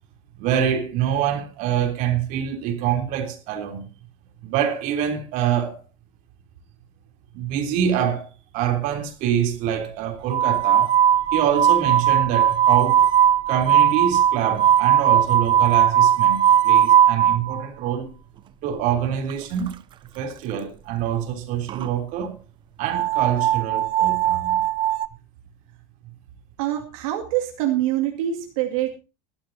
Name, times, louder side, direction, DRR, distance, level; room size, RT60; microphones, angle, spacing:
voice 1, 0.4-3.8 4.4-5.8 7.3-8.3 8.5-10.9 11.3-13.1 13.5-18.1 18.6-19.8 20.1-22.4 22.8-24.6, right 9 dB, 50° right, 3.4 m, -25 dB
sound 1, 10.3-17.6 19.3-19.4 19.7-19.8 20.5-20.6 21.7-21.9 22.9-25.1, right 10 dB, 30° right, 0.7 m, -18 dB
voice 2, 26.6-29.0, right 12 dB, 80° right, 2.4 m, -25 dB
21.0 x 11.5 x 2.8 m
cardioid pair, 160°, 17 cm